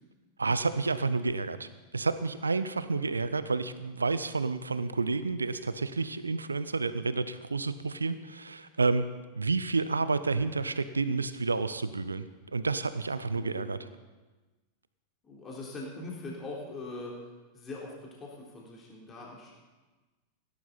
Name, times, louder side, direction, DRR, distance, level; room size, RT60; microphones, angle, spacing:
voice 1, 0.4-1.7 1.9-9.1 9.4-12.3 12.5-13.8, right 3 dB, 75° right, 13 dB, 0.6 m, -30 dB
voice 2, 13.2-13.8 15.2-17.1 17.5-19.6, left 2 dB, 20° left, -3 dB, 3.4 m, -42 dB
17.0 x 11.5 x 4.2 m, 1.2 s
figure-of-eight pair, 90°, 0 cm